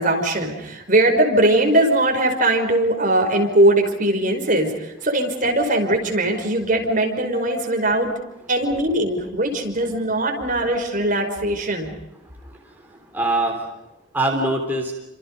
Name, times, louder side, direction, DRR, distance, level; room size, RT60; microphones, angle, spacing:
voice 1, 0.0-8.1 8.5-11.9, right 1 dB, 45° right, 3 dB, 5.4 m, -20 dB
voice 2, 12.4-13.7 14.1-14.9, right 1 dB, 10° right, 0 dB, 3.6 m, -24 dB
30.0 x 26.5 x 5.5 m, 0.91 s
head